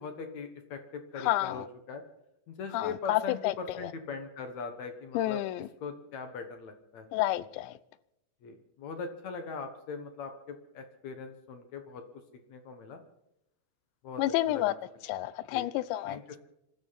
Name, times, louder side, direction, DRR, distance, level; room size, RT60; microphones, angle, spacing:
voice 1, 0.0-2.0 2.5-5.4 5.8-7.1 8.4-12.0 12.5-13.0 14.0-14.7 15.5-15.7 16.1-16.4, left 5 dB, 65° left, 6 dB, 1.8 m, -41 dB
voice 2, 1.2-1.6 2.7-3.5 5.1-5.7 7.1-7.7 14.2-14.7 15.1-16.2, left 15 dB, 85° left, 17 dB, 3.0 m, -29 dB
26.5 x 13.0 x 4.1 m, 0.84 s
omnidirectional pair, 5.1 m